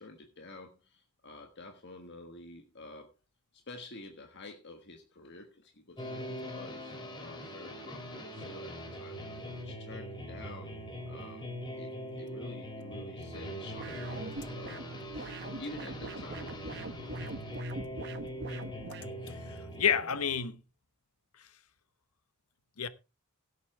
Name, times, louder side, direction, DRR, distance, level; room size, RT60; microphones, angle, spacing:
voice 1, 0.0-3.1 3.5-10.7 11.1-14.9 15.1-16.6, left 2 dB, 50° left, 1.5 m, -49 dB
sound 1, 6.0-20.4, equal, 20° left, 2.8 m, -42 dB
sound 2, 13.8-19.1, right 3 dB, 50° right, 0.9 m, -43 dB
voice 2, 19.3-20.6 22.8-22.9, left 7 dB, 85° left, 1.0 m, -30 dB
16.5 x 8.4 x 3.3 m
head